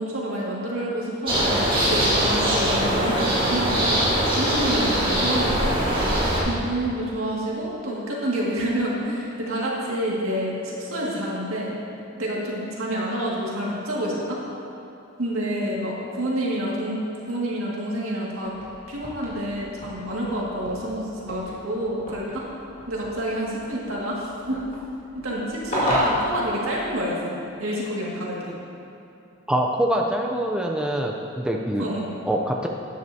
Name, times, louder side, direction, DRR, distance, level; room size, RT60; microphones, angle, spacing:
voice 1, 0.0-4.0 4.4-6.0 6.4-11.8 12.2-14.4 15.2-18.5 18.9-22.4 22.9-24.6 25.1-28.5 31.8-32.1, right 1 dB, 80° right, -5 dB, 2.1 m, -28 dB
sound 1, 1.3-6.4, right 1 dB, 25° right, 2.1 m, -22 dB
sound 2, 18.4-27.1, equal, 35° left, 2.2 m, -33 dB
voice 2, 29.5-31.9 32.3-32.7, right 1 dB, 5° right, 0 dB, 0.5 m, -24 dB
12.0 x 9.5 x 2.8 m, 2.8 s
head